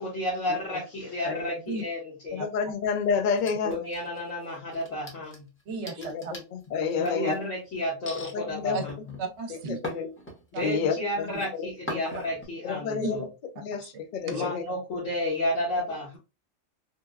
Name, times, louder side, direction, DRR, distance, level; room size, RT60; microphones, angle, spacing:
voice 1, 0.0-2.4 3.6-5.4 7.0-8.9 10.5-13.2 14.3-16.2, left 1 dB, 75° left, -7 dB, 1.5 m, -32 dB
voice 2, 1.2-1.6 2.3-3.7 6.0-7.4 8.3-8.8 9.7-10.1 10.6-11.2 11.6-12.1 12.6-13.3 13.6-14.6, left 5 dB, 60° left, 5 dB, 0.5 m, -29 dB
sound 1, 3.3-4.3 4.7-7.4 8.1-8.3 8.9-10.7 11.1-11.5 11.9-12.5, equal, 10° left, 0.6 m, -41 dB
voice 3, 5.7-6.3 7.0-7.1 8.7-8.8 9.2-9.8 10.5-10.7 12.0-12.2 13.0-13.1 13.8-13.9 14.2-14.4, right 3 dB, 65° right, 5 dB, 0.9 m, -34 dB
3.4 x 2.1 x 2.2 m, 0.27 s
omnidirectional pair, 1.3 m